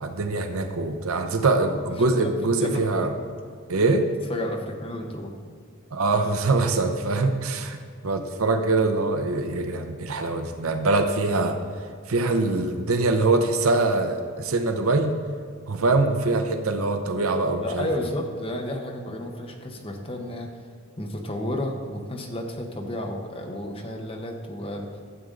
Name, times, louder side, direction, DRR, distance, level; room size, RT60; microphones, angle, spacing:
voice 1, 0.0-3.1 3.7-4.1 5.9-11.6 12.1-15.1 15.7-17.9, right 3 dB, 80° right, 6 dB, 0.7 m, -23 dB
voice 2, 1.9-2.3 2.6-3.1 4.3-5.4 16.7-16.9 17.6-20.5 21.0-25.0, left 1 dB, 25° left, 2 dB, 1.0 m, -32 dB
12.5 x 7.8 x 3.8 m, 2.1 s
head